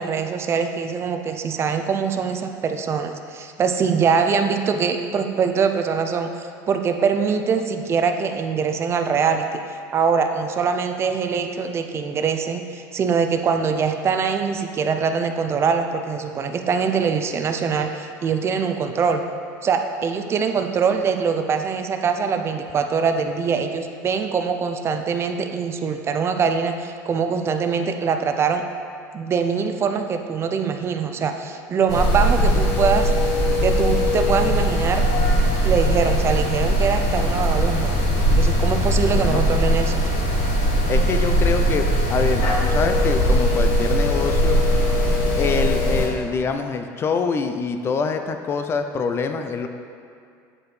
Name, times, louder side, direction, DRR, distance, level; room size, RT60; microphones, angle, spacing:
voice 1, 0.0-19.2 19.6-28.6 29.1-33.1 33.6-35.0 35.6-37.9 38.4-40.0, right 6 dB, 30° right, 6 dB, 0.4 m, -23 dB
sound 1, 31.9-46.1, equal, 55° left, 1.3 m, -20 dB
voice 2, 40.9-41.8 42.1-44.6 45.4-49.7, left 5 dB, 30° left, 7 dB, 0.4 m, -25 dB
8.5 x 4.8 x 3.2 m, 2.3 s
supercardioid pair, 115°, 8 cm